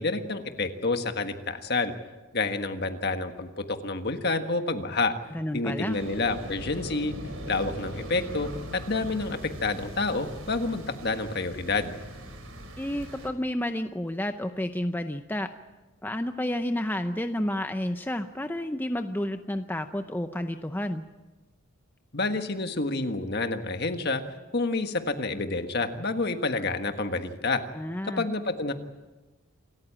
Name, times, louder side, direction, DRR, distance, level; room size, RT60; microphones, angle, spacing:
voice 1, 0.0-1.9 2.3-5.1 5.5-7.1 7.5-11.9 22.1-24.2 24.5-27.6 28.2-28.7, left 3 dB, 50° left, 7 dB, 1.6 m, -28 dB
voice 2, 5.3-6.0 12.8-15.5 16.0-21.0 27.7-28.3, left 1 dB, 10° left, 7 dB, 0.6 m, -30 dB
sound 1, 5.9-13.3, equal, 85° right, 3.9 m, -40 dB
27.5 x 14.0 x 8.7 m, 1.2 s
head